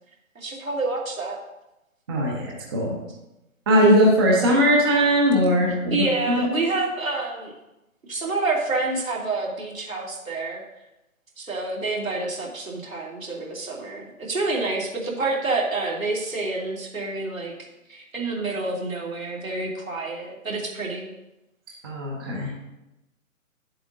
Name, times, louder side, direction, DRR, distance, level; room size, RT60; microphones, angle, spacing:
voice 1, 0.3-1.4 5.9-7.5 8.1-10.6 11.4-17.5 17.9-21.1, right 3 dB, 65° right, -2 dB, 2.8 m, -28 dB
voice 2, 2.1-3.0 3.7-6.0 6.3-6.5 21.8-22.5, equal, 15° right, -2 dB, 0.8 m, -19 dB
11.5 x 7.7 x 2.6 m, 0.94 s
figure-of-eight pair, 135°, 43 cm